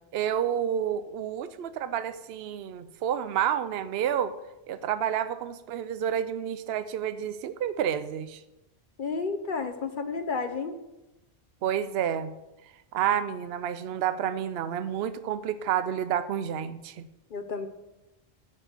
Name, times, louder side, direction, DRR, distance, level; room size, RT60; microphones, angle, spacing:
voice 1, 0.1-4.3 4.7-8.4 11.6-12.3 12.9-17.1, right 9 dB, 70° right, 12 dB, 0.8 m, -29 dB
voice 2, 9.0-10.8 17.3-17.7, left 4 dB, 55° left, 8 dB, 0.8 m, -31 dB
7.6 x 6.2 x 7.9 m, 0.94 s
omnidirectional pair, 1.1 m